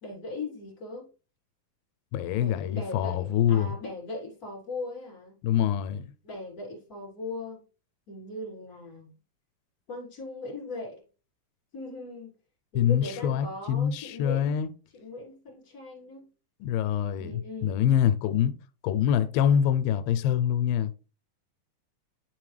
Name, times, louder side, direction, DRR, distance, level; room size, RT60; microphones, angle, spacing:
voice 1, 0.0-1.1 2.3-5.4 6.2-7.6 8.1-9.1 9.9-11.0 11.7-12.3 12.7-14.6 14.9-16.3 17.2-17.8, left 2 dB, 25° left, 3.2 m, -39 dB
voice 2, 2.1-3.7 5.4-6.1 12.8-14.7 16.6-18.5 18.8-21.0, left 9 dB, 90° left, 2.3 m, -25 dB
11.0 x 3.9 x 3.2 m
omnidirectional pair, 4.0 m